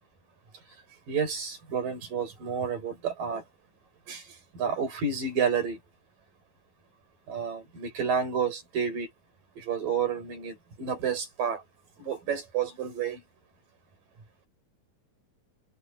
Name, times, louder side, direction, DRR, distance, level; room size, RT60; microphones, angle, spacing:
voice 1, 1.1-3.4 4.1-5.8 7.3-9.1 9.6-11.6 12.0-13.2, right 6 dB, 85° right, 7.6 m, -30 dB
omnidirectional pair, 3.8 m